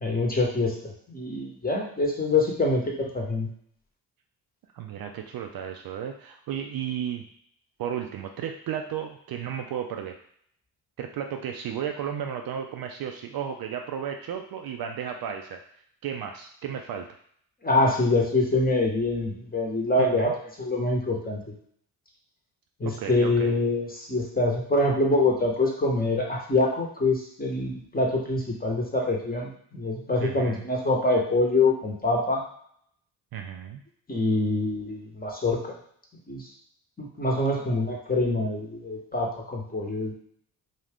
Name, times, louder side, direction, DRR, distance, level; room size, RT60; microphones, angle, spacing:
voice 1, 0.0-3.5 17.6-21.4 22.8-32.4 34.1-35.8 36.3-36.4 37.0-40.1, left 2 dB, 20° left, -1 dB, 0.9 m, -25 dB
voice 2, 4.7-7.3 7.8-10.2 11.0-15.6 16.0-17.1 20.0-20.3 22.8-23.5 30.2-30.6 33.3-33.8, right 8 dB, 50° right, 4 dB, 0.4 m, -34 dB
2.4 x 2.4 x 3.4 m, 0.64 s
hypercardioid pair, 40°, 46 cm